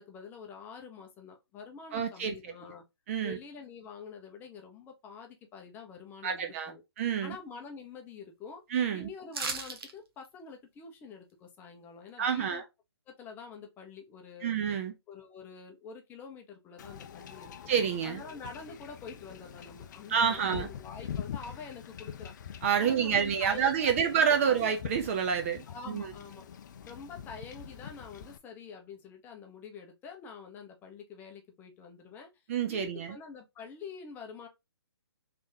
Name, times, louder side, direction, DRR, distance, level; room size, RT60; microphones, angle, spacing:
voice 1, 0.0-2.8 3.2-6.8 7.2-8.6 8.9-12.6 13.1-14.6 15.1-17.5 18.0-22.3 22.8-23.7 24.0-24.1 24.4-24.6 25.7-26.4 26.8-32.3 32.7-34.5, left 5 dB, 15° left, 0.7 m, -46 dB
voice 2, 1.9-2.4 3.1-3.4 6.2-7.4 8.7-9.1 12.2-12.6 14.4-14.9 17.7-18.2 20.1-20.7 22.6-26.1 32.5-33.1, right 7 dB, 30° right, 0.4 m, -28 dB
sound 1, 9.3-9.9 10.2-10.3, right 4 dB, 60° right, 1.0 m, -35 dB
Wind / Ocean / Boat Water vehicle, 16.8-28.4, left 8 dB, 45° left, 0.4 m, -44 dB
3.4 x 3.3 x 2.6 m
hypercardioid pair, 145°, 14 cm